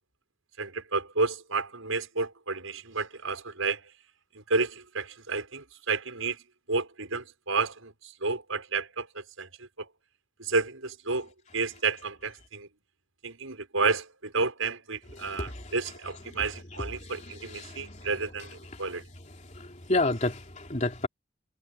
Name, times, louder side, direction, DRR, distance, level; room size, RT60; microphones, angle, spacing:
voice 1, 0.6-3.9 4.3-6.4 6.7-9.9 10.4-12.7 13.2-19.0, right 4 dB, 80° right, 6.2 m, -31 dB
voice 2, 15.2-15.7 17.0-18.1 18.7-18.8 19.4-21.1, left 2 dB, 35° left, 3.0 m, -31 dB
head